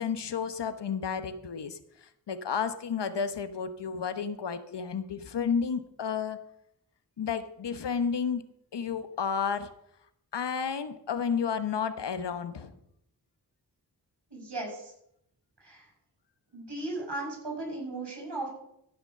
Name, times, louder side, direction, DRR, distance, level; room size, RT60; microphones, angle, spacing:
voice 1, 0.0-6.4 7.2-8.4 8.7-9.7 10.3-12.7, left 6 dB, 80° left, 11 dB, 1.0 m, -31 dB
voice 2, 14.3-14.9 15.6-15.9 16.5-18.5, right 2 dB, 75° right, -1 dB, 6.0 m, -36 dB
14.0 x 5.9 x 6.5 m, 0.76 s
wide cardioid pair, 85°, 41 cm